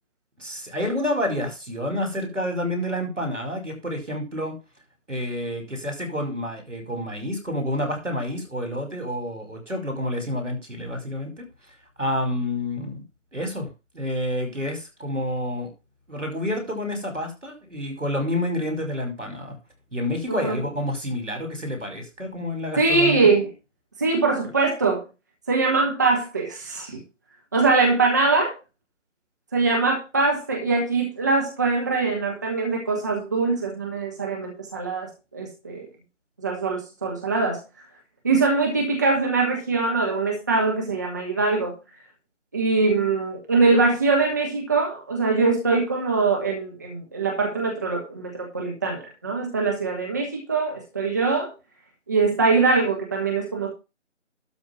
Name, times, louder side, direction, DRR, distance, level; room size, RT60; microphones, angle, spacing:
voice 1, 0.4-4.6 5.1-11.5 12.0-13.0 13.3-15.7 16.1-19.6 19.9-23.3, left 1 dB, 75° right, 5 dB, 5.6 m, -29 dB
voice 2, 22.8-23.5 24.0-25.0 25.5-27.0 27.5-28.5 29.5-35.8 36.4-37.6 38.2-41.8 42.5-51.5 52.1-53.7, right 3 dB, 15° right, -1 dB, 1.2 m, -22 dB
12.5 x 4.4 x 7.3 m, 0.28 s
figure-of-eight pair, 160°, 37 cm